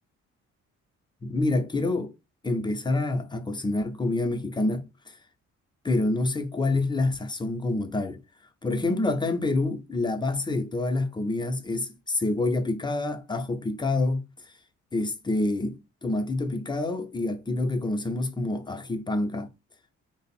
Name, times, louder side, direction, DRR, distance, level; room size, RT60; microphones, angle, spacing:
voice 1, 1.2-2.1 2.4-5.2 5.8-8.2 8.6-14.5 14.9-19.5, left 2 dB, 15° left, 0.5 m, -27 dB
3.2 x 2.0 x 4.2 m
cardioid pair, 90°, 30 cm